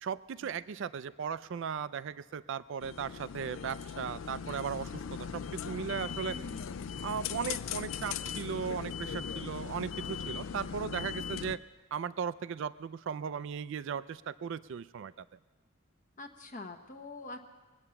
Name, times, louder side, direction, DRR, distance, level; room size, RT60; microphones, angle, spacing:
voice 1, 0.0-6.4 7.0-11.6 11.9-15.1, right 7 dB, 65° right, 16 dB, 0.4 m, -37 dB
sound 1, 2.8-11.6, left 7 dB, 75° left, 0.4 m, -39 dB
voice 2, 6.3-6.9 10.4-10.6 16.2-17.4, left 2 dB, 40° left, 4 dB, 0.9 m, -45 dB
22.5 x 8.7 x 6.9 m, 1.3 s
head